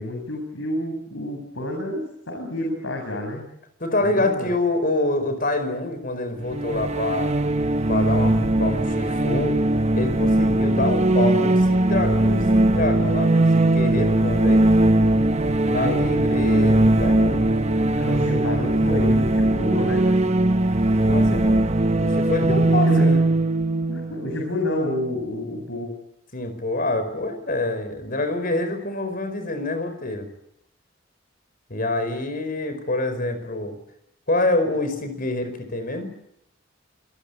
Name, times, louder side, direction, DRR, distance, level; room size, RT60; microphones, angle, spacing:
voice 1, 0.0-3.5 4.0-4.5 15.8-16.0 17.9-20.0 22.4-23.1 23.9-25.9, left 1 dB, 85° left, 1 dB, 8.0 m, -29 dB
voice 2, 3.8-7.3 7.9-9.6 10.0-14.7 15.7-17.5 21.0-21.7 22.0-23.2 26.3-30.3 31.7-33.8 34.3-36.1, left 2 dB, 50° left, 9 dB, 5.0 m, -26 dB
sound 1, 6.5-25.1, right 1 dB, 35° right, 1.0 m, -20 dB
26.5 x 21.5 x 8.3 m, 0.76 s
head